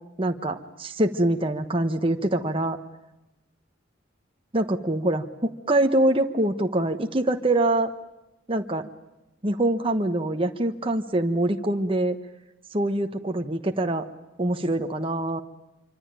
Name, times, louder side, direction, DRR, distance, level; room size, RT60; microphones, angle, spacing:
voice 1, 0.2-2.8 4.5-7.9 8.5-8.9 9.4-12.2 12.7-14.1 14.4-15.4, right 1 dB, 30° right, 5 dB, 1.2 m, -24 dB
26.0 x 25.0 x 9.0 m, 0.93 s
head